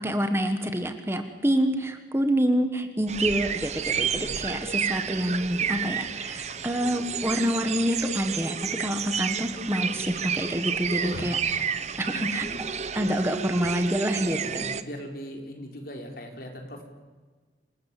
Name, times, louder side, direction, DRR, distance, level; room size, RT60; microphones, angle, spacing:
voice 1, 0.0-11.4 12.0-12.5 12.9-14.7, equal, 15° right, 7 dB, 1.5 m, -27 dB
sound 1, 3.1-14.8, right 7 dB, 35° right, 1.0 m, -30 dB
voice 2, 4.0-4.4 11.0-11.6 14.3-16.8, equal, 50° left, 3 dB, 4.5 m, -39 dB
27.5 x 18.5 x 8.5 m, 1.4 s
head